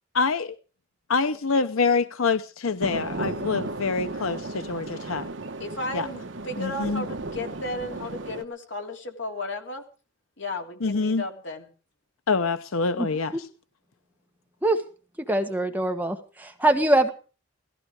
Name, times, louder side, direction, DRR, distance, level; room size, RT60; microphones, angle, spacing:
voice 1, 0.1-0.5 1.1-5.3 5.9-6.1 6.6-7.0 10.8-11.2 12.3-13.5, left 4 dB, 80° left, 0.8 m, -26 dB
sound 1, 2.8-8.4, right 2 dB, 60° right, 1.2 m, -35 dB
voice 2, 5.6-9.8 10.4-11.7, left 2 dB, 55° left, 3.2 m, -34 dB
voice 3, 15.3-17.1, right 1 dB, 10° right, 1.5 m, -23 dB
17.5 x 15.0 x 4.8 m
head